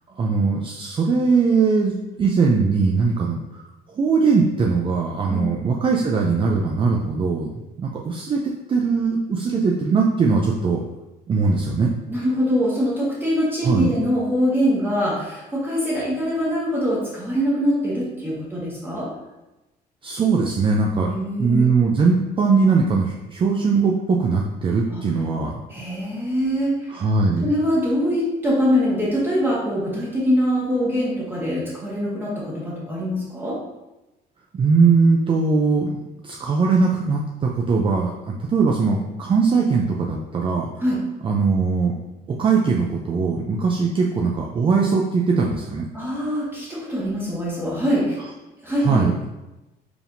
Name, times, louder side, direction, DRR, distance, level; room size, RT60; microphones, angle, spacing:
voice 1, 0.2-3.6 4.0-7.5 7.8-8.4 8.7-10.8 11.3-11.9 13.6-13.9 20.0-21.1 21.4-25.6 26.9-27.5 34.5-40.7 41.2-41.9 42.4-45.9 48.8-49.1, right 4 dB, 30° right, -1 dB, 0.4 m, -20 dB
voice 2, 12.1-19.1 21.0-21.7 24.9-25.0 25.7-27.0 27.4-33.6 40.8-41.0 45.9-48.2 48.6-49.0, equal, 10° right, -7 dB, 1.2 m, -23 dB
4.8 x 3.5 x 2.6 m, 1.0 s
cardioid pair, 110°, 17 cm